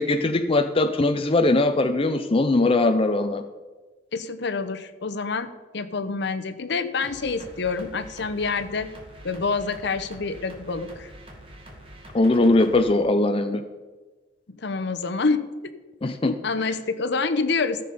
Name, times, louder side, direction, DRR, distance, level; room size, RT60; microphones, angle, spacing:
voice 1, 0.0-3.4 12.1-13.6 16.0-16.4, left 2 dB, 30° left, 7 dB, 0.5 m, -20 dB
voice 2, 4.1-8.9 9.2-11.1 14.6-15.7 16.3-17.8, left 4 dB, 65° left, 12 dB, 0.8 m, -27 dB
sound 1, 7.0-12.8, equal, 30° right, 2.0 m, -45 dB
14.0 x 6.8 x 5.6 m, 1.3 s
head